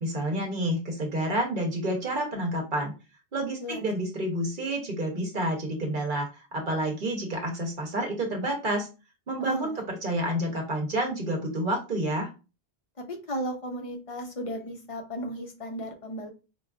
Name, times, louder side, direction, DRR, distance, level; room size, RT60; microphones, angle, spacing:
voice 1, 0.0-2.9 3.3-8.9 9.3-12.3, right 1 dB, 50° right, 1 dB, 1.0 m, -29 dB
voice 2, 9.4-9.8 13.0-16.3, right 1 dB, 40° left, 4 dB, 0.6 m, -35 dB
4.4 x 2.4 x 2.3 m, 0.30 s
omnidirectional pair, 1.1 m